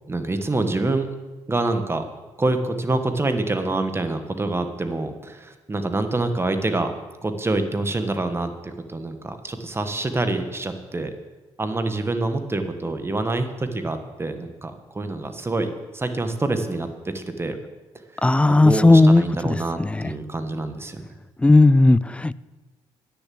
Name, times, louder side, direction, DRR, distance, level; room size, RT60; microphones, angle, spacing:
voice 1, 0.1-1.1 1.5-2.0 2.4-6.9 7.2-11.1 11.6-17.5 18.1-18.2 18.5-21.0, right 2 dB, 20° right, 8 dB, 1.3 m, -26 dB
voice 2, 18.2-20.1 21.4-22.3, left 2 dB, 10° left, 19 dB, 0.3 m, -16 dB
9.7 x 6.9 x 7.7 m, 1.2 s
supercardioid pair, 65°, 11 cm